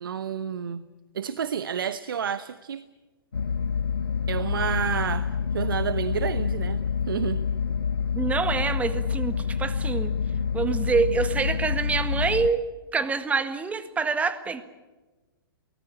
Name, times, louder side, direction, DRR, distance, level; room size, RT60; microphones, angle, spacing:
voice 1, 0.0-0.8 1.1-2.8 4.3-5.3 5.5-6.8 7.1-7.4, right 8 dB, 65° right, 14 dB, 1.0 m, -29 dB
sound 1, 3.3-12.5, left 6 dB, 80° left, 1.0 m, -27 dB
voice 2, 8.1-10.1 10.5-12.6 12.9-14.6, right 5 dB, 10° right, 11 dB, 1.7 m, -26 dB
24.0 x 19.0 x 8.6 m, 1.2 s
figure-of-eight pair, 115°, 12 cm